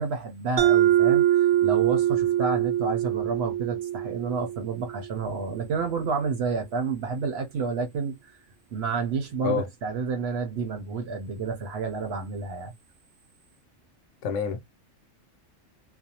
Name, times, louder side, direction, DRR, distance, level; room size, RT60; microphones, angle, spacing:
voice 1, 0.0-8.4 8.7-12.7, right 5 dB, 60° right, 0.8 m, -30 dB
Mallet percussion, 0.6-5.1, right 12 dB, 90° right, 1.0 m, -23 dB
voice 2, 14.2-14.6, left 6 dB, 75° left, 1.0 m, -27 dB
2.5 x 2.1 x 2.7 m
omnidirectional pair, 1.4 m